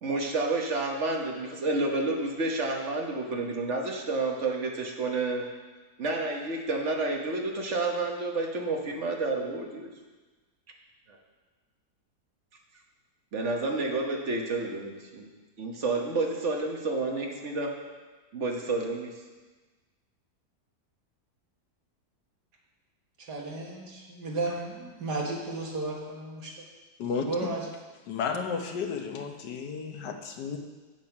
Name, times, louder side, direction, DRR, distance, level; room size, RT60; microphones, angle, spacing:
voice 1, 0.0-5.4 6.0-9.9 11.1-11.2 13.3-15.3 15.6-17.7 18.3-19.1, right 3 dB, 45° right, 1 dB, 1.5 m, -30 dB
voice 2, 23.3-26.5 27.3-27.6, right 2 dB, 75° right, -2 dB, 2.2 m, -33 dB
voice 3, 27.0-27.5 28.1-30.6, left 5 dB, 85° left, 4 dB, 1.6 m, -33 dB
8.4 x 7.6 x 5.9 m, 1.3 s
omnidirectional pair, 1.8 m